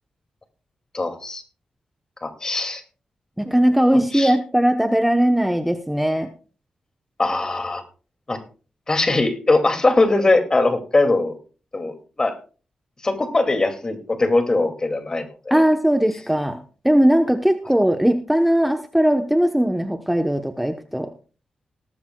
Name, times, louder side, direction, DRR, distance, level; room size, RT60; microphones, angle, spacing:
voice 1, 0.9-1.4 2.2-2.8 4.1-4.3 7.2-7.8 8.3-8.4 8.9-11.4 11.7-12.4 13.0-15.6, left 2 dB, 30° left, 6 dB, 2.3 m, -21 dB
voice 2, 3.4-6.3 15.5-16.6 16.8-21.1, equal, 5° right, 6 dB, 0.9 m, -19 dB
18.0 x 14.0 x 2.3 m, 0.37 s
cardioid pair, 90°, 2 cm